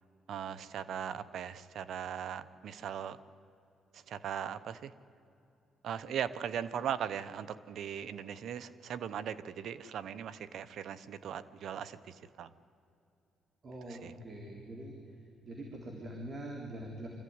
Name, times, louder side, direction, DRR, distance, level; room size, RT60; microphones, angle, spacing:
voice 1, 0.3-3.2 3.9-4.9 5.8-12.5 13.9-14.1, right 8 dB, 70° right, 14 dB, 1.0 m, -39 dB
voice 2, 13.6-15.0 15.4-17.1, right 1 dB, 45° right, 1 dB, 3.8 m, -43 dB
25.5 x 15.0 x 9.7 m, 2.6 s
cardioid pair, 90°, 0 cm